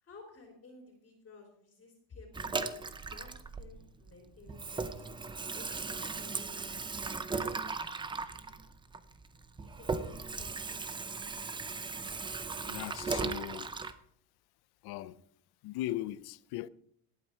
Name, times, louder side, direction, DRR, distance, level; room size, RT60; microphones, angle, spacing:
voice 1, 0.0-8.6 9.6-10.0 10.4-10.8, left 3 dB, 25° left, 3.3 m, -55 dB
Water tap faucet / Sink (filling or washing), 2.3-4.1 4.4-13.9, right 4 dB, 10° right, 0.4 m, -37 dB
voice 2, 12.6-13.7 14.8-15.2 15.6-16.7, left 15 dB, 55° left, 0.7 m, -38 dB
18.5 x 8.8 x 4.4 m
cardioid pair, 140°, 47 cm